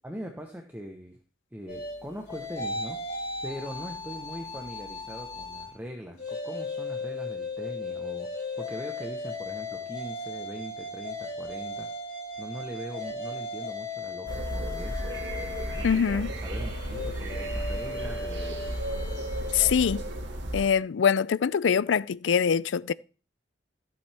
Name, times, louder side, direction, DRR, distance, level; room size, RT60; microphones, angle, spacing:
voice 1, 0.0-1.2 1.5-3.0 3.4-11.9 12.4-15.1 15.7-18.6, equal, 10° right, 1.0 m, -41 dB
sound 1, 1.7-5.7 6.1-19.7, left 2 dB, 45° left, 5.4 m, -37 dB
sound 2, 14.3-20.7, right 1 dB, 75° right, 2.0 m, -33 dB
voice 2, 15.8-16.3 19.5-20.0 20.5-22.9, left 7 dB, 85° left, 0.4 m, -24 dB
14.5 x 7.4 x 3.5 m
head